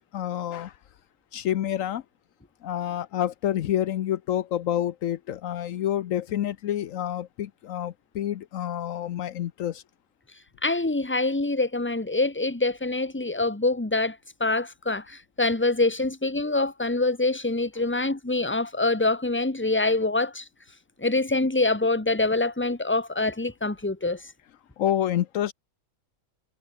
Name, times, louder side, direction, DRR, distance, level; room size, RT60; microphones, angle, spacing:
voice 1, 0.1-0.7 1.3-2.0 2.6-9.8 24.8-25.5, left 11 dB, 75° left, 1.1 m, -28 dB
voice 2, 10.6-20.4 21.0-24.2, left 2 dB, 10° left, 1.6 m, -25 dB
omnidirectional pair, 1.4 m